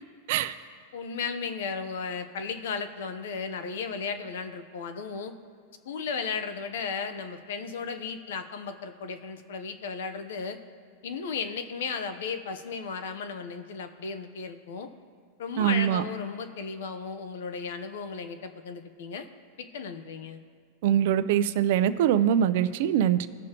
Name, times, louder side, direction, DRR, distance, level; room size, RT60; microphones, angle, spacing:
voice 1, 0.9-5.3 5.8-10.6 11.0-14.9 15.4-19.3 19.6-20.4, left 5 dB, 75° left, 9 dB, 0.9 m, -35 dB
voice 2, 15.6-16.0 20.8-23.3, right 10 dB, 60° right, 13 dB, 0.5 m, -23 dB
18.5 x 6.2 x 3.0 m, 2.1 s
supercardioid pair, 140°, 0 cm